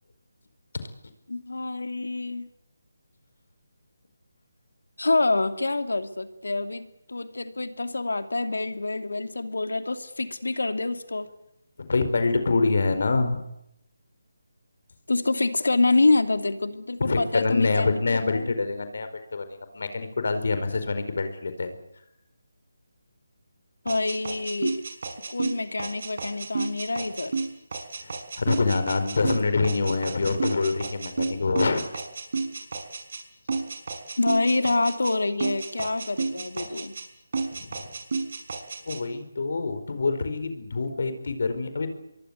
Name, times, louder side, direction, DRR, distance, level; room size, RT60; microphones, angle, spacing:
voice 1, 1.3-2.5 5.0-11.3 15.1-18.5 23.8-24.8 25.3-27.3 34.2-37.0, left 2 dB, 75° left, 8 dB, 2.8 m, -26 dB
voice 2, 11.8-13.4 17.0-21.7 28.0-31.8 37.5-37.9 38.8-41.9, left 3 dB, 60° left, 9 dB, 4.8 m, -26 dB
sound 1, 23.9-33.2 33.5-35.1 35.4-37.1 37.3-39.0, right 4 dB, 55° right, 5.6 m, -31 dB
25.0 x 23.0 x 8.2 m, 0.84 s
figure-of-eight pair, 155°, 0 cm